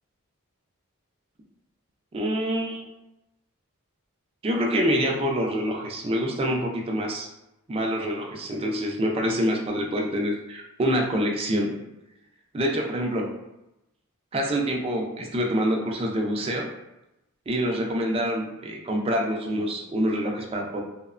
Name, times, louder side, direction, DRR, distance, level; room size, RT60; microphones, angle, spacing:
voice 1, 2.1-2.9 4.4-7.3 7.7-11.7 12.5-13.3 14.3-16.7 17.5-20.8, equal, 25° right, 0 dB, 0.4 m, -26 dB
2.8 x 2.0 x 2.4 m, 0.90 s
head